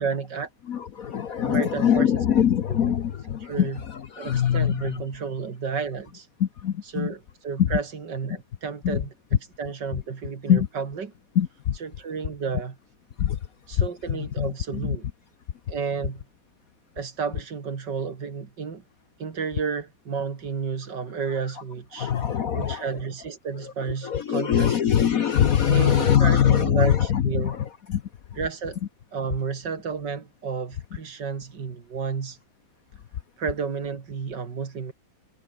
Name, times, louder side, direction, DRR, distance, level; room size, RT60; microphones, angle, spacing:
voice 1, 0.0-0.5 1.4-2.1 2.4-2.5 3.4-3.8 4.2-6.3 6.9-7.2 7.4-9.1 9.6-11.1 11.8-12.7 13.7-15.1 15.7-16.2 17.0-18.8 19.2-22.1 22.5-24.7 25.7-27.5 28.4-28.8 29.1-32.4 33.4-34.9, right 5 dB, 60° right, 2.9 m, -31 dB
voice 2, 0.7-5.0 6.4-7.1 7.6-7.7 8.8-9.0 10.5-10.7 11.3-11.8 13.2-13.4 13.7-15.0 22.0-22.9 23.5-28.0, left 9 dB, 55° left, 1.2 m, -23 dB
omnidirectional pair, 2.1 m